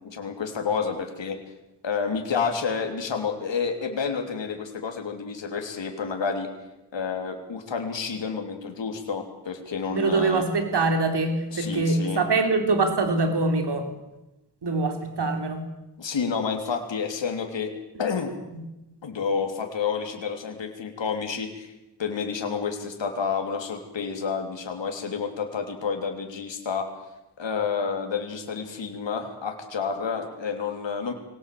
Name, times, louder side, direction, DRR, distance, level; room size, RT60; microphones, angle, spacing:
voice 1, 0.0-1.4 1.8-6.5 6.9-10.4 11.5-12.2 16.0-17.7 18.0-18.3 19.0-21.7 22.0-26.9 27.4-31.1, left 5 dB, 75° left, 4 dB, 3.3 m, -29 dB
voice 2, 9.9-13.9 14.6-15.6 18.5-18.6, right 3 dB, 65° right, 6 dB, 3.5 m, -24 dB
23.0 x 18.0 x 8.6 m, 0.97 s
wide cardioid pair, 85°, 44 cm